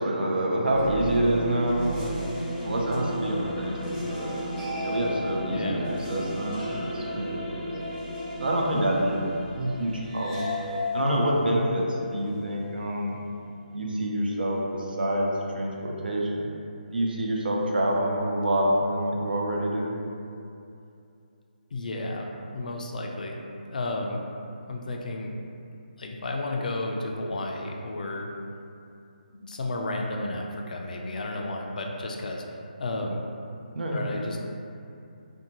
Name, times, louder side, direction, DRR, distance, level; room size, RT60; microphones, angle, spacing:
voice 1, 0.0-2.2 2.6-4.4 4.8-7.7 8.4-9.2 9.6-10.5 10.9-13.2 13.7-16.5 16.9-19.9 33.7-34.0, right 1 dB, 75° right, -2 dB, 0.5 m, -27 dB
sound 1, 0.6-12.8, equal, 15° right, 0.6 m, -33 dB
voice 2, 5.5-5.8 21.7-23.4 23.7-24.2 24.7-25.4 26.0-28.3 29.3-32.4 32.8-33.2 33.9-34.4, left 2 dB, 55° left, 1 dB, 0.3 m, -32 dB
2.6 x 2.2 x 2.8 m, 2.6 s
hypercardioid pair, 165°, 5 cm